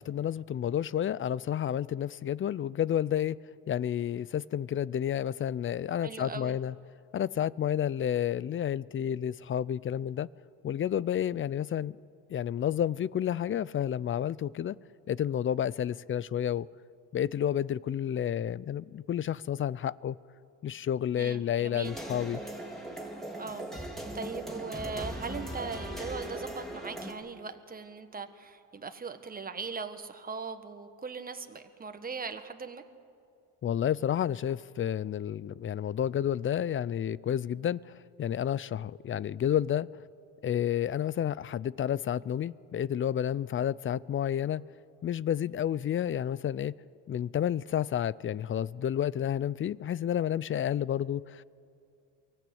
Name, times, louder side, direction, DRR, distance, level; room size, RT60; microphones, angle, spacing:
voice 1, 0.0-3.4 3.7-6.7 7.1-10.3 10.6-12.0 12.3-14.8 15.1-16.7 17.1-20.2 20.6-22.4 33.6-39.9 40.4-44.6 45.0-46.7 47.1-51.4, left 10 dB, 35° left, 22 dB, 0.4 m, -30 dB
voice 2, 6.0-6.6 21.2-21.9 23.4-32.8, right 4 dB, 20° right, 8 dB, 1.4 m, -40 dB
sound 1, 21.8-27.1, right 1 dB, ahead, 3.9 m, -39 dB
24.0 x 15.5 x 8.7 m, 2.4 s
cardioid pair, 90°, 39 cm